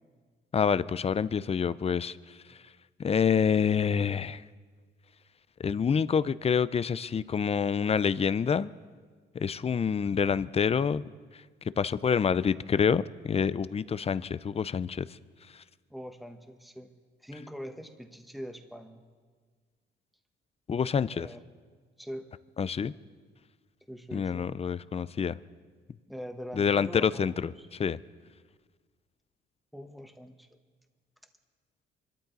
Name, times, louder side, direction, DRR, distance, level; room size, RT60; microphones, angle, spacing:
voice 1, 0.5-2.6 3.0-4.4 5.6-8.7 9.3-11.0 11.8-15.1 20.7-21.3 22.6-22.9 24.1-25.4 26.5-28.0, left 6 dB, 30° left, 16 dB, 0.5 m, -27 dB
voice 2, 15.9-19.0 21.1-21.4 22.0-22.3 23.9-24.5 26.1-27.7 29.7-30.5, equal, ahead, 5 dB, 1.4 m, -43 dB
25.5 x 13.0 x 4.1 m, 1.5 s
cardioid pair, 90°, 20 cm